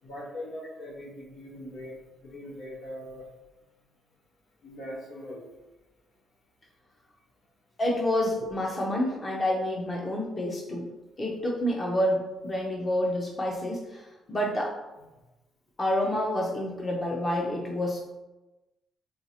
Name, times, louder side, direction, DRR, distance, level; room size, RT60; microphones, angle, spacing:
voice 1, 0.0-3.2 4.6-5.5, left 1 dB, 90° left, -6 dB, 1.3 m, -41 dB
voice 2, 7.8-10.9 11.2-14.8 15.8-18.0, left 1 dB, 30° left, -1 dB, 0.7 m, -28 dB
4.4 x 2.4 x 2.8 m, 1.1 s
cardioid pair, 90°, 0 cm